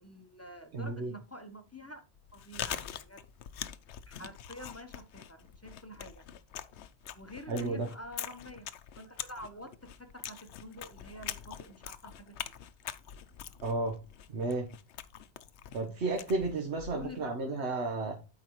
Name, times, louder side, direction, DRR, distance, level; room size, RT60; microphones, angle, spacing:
voice 1, 0.0-2.0 2.3-3.2 4.1-6.2 7.2-8.7 9.0-12.4 16.9-17.9, left 1 dB, 15° left, 7 dB, 0.7 m, -47 dB
voice 2, 0.7-1.1 7.5-7.9 13.6-14.0 14.3-14.7 15.7-18.1, right 3 dB, 75° right, 3 dB, 1.4 m, -32 dB
Chewing mastication, 2.2-17.3, left 10 dB, 80° left, 0.9 m, -44 dB
12.0 x 4.9 x 3.1 m, 0.32 s
omnidirectional pair, 1.1 m